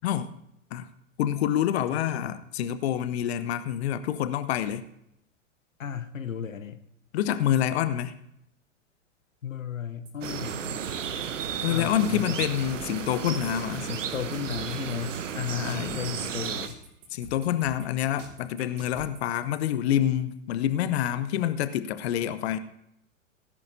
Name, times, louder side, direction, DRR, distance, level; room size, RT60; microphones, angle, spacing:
voice 1, 0.0-0.3 0.7-0.9 1.2-4.8 7.1-8.1 11.6-13.9 15.5-16.0 17.1-22.6, left 11 dB, 55° left, 12 dB, 0.9 m, -27 dB
voice 2, 1.9-2.4 5.8-6.9 9.4-10.8 11.7-12.5 13.8-16.8, left 8 dB, 85° left, 11 dB, 0.9 m, -35 dB
sound 1, 10.0-19.6, right 2 dB, 35° right, 3.5 m, -47 dB
sound 2, 10.2-16.7, right 8 dB, 75° right, 1.0 m, -34 dB
17.5 x 10.5 x 2.7 m, 0.79 s
figure-of-eight pair, 105°, 38 cm